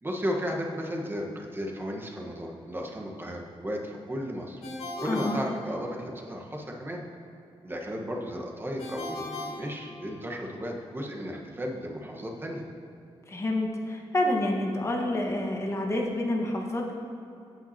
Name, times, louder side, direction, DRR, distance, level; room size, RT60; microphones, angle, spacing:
voice 1, 0.0-4.6 5.0-7.0 7.6-12.6, equal, 20° right, 0 dB, 1.3 m, -34 dB
Ringtone, 4.6-6.3 8.8-10.5, left 2 dB, 80° left, 1.8 m, -38 dB
voice 2, 5.1-5.4 13.3-16.9, left 1 dB, 25° left, 0 dB, 1.4 m, -28 dB
16.5 x 5.8 x 2.9 m, 2.6 s
cardioid pair, 90°, 10 cm